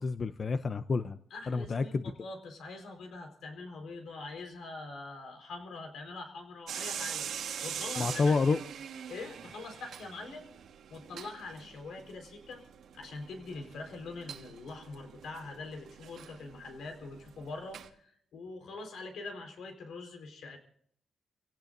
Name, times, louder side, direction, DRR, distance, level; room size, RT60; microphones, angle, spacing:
voice 1, 0.0-1.2 1.5-2.1 8.0-8.6, left 4 dB, 35° left, 11 dB, 0.6 m, -29 dB
voice 2, 1.3-7.3 7.6-8.6 9.1-10.5 10.9-12.6 12.9-20.6, left 3 dB, 75° left, 4 dB, 4.4 m, -44 dB
sound 1, 6.7-17.9, right 8 dB, 75° right, 1.5 m, -43 dB
29.5 x 17.5 x 2.6 m, 0.64 s
cardioid pair, 135°, 0 cm